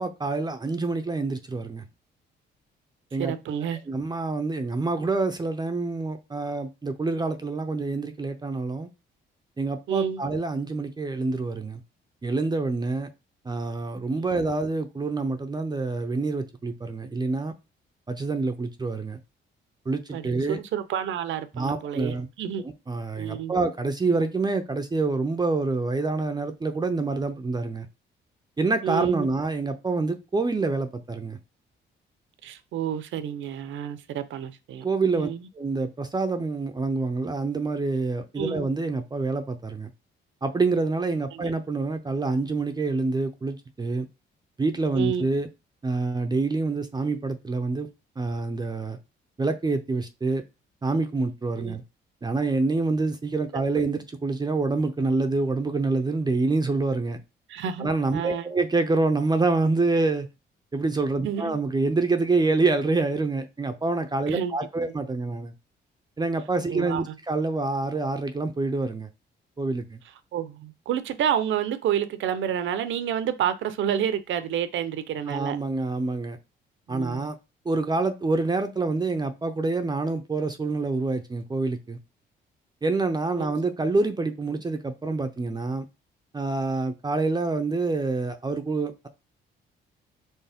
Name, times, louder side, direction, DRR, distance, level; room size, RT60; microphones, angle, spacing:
voice 1, 0.0-1.8 3.1-3.3 3.7-8.9 9.6-11.8 12.2-13.1 13.4-17.5 18.1-19.2 19.9-20.6 21.5-22.3 22.6-27.9 28.6-31.4 34.8-35.3 35.6-39.9 40.4-44.1 44.6-45.5 45.8-47.9 48.2-49.0 49.4-50.4 50.8-51.8 52.2-57.2 57.8-60.3 60.7-65.5 66.2-69.1 69.6-70.0 75.3-76.4 76.9-77.4 77.7-82.0 82.8-85.9 86.3-89.1, right 3 dB, 20° right, 0.5 m, -26 dB
voice 2, 3.2-3.8 9.9-10.2 14.2-14.5 20.1-22.6 23.2-23.5 28.8-29.3 32.4-34.9 35.1-35.5 38.4-38.7 41.3-41.4 44.9-45.2 51.6-51.8 53.5-53.6 57.5-58.5 61.2-61.6 64.3-64.6 64.9-65.0 66.7-67.1 70.3-75.6 76.9-77.3 83.4-83.5, right 9 dB, 75° right, 0.7 m, -29 dB
4.5 x 3.1 x 3.5 m
cardioid pair, 90°, 20 cm